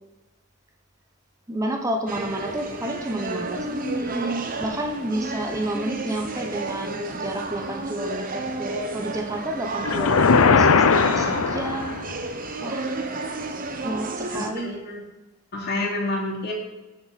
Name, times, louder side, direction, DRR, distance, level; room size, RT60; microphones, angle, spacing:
voice 1, 1.5-12.0 12.6-12.9 13.8-14.8, right 1 dB, 15° right, 2 dB, 1.0 m, -30 dB
sound 1, 2.1-14.5, right 2 dB, 40° right, 0.9 m, -31 dB
sound 2, 9.8-12.2, left 5 dB, 80° left, 0.6 m, -19 dB
voice 2, 14.3-15.0 15.5-16.5, left 2 dB, 50° left, -3 dB, 3.0 m, -29 dB
17.5 x 6.3 x 4.2 m, 1.1 s
head